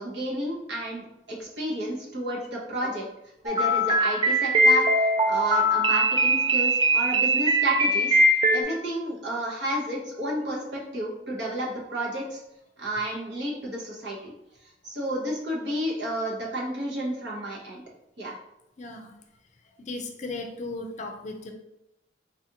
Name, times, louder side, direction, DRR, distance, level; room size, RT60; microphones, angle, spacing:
voice 1, 0.0-3.0 3.4-4.9 5.3-8.2 8.5-12.4 12.8-14.3 14.8-17.8 18.2-18.4, right 1 dB, 75° right, -3 dB, 0.9 m, -31 dB
sound 1, 3.5-8.6, right 1 dB, 25° right, 0.3 m, -21 dB
voice 2, 18.8-19.1 19.9-21.5, left 2 dB, 40° left, 4 dB, 0.4 m, -36 dB
4.0 x 2.5 x 2.8 m, 0.85 s
head